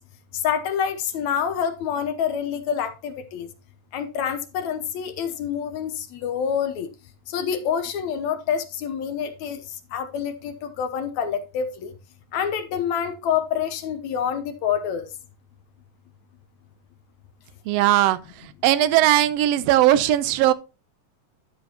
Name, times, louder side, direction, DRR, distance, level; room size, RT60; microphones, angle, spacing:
voice 1, 0.4-3.5 3.9-6.9 7.3-9.6 9.9-11.9 12.3-15.1, left 8 dB, 75° left, 2.1 m, -27 dB
voice 2, 17.7-20.5, right 13 dB, 75° right, 1.5 m, -19 dB
11.5 x 7.3 x 2.8 m
omnidirectional pair, 3.5 m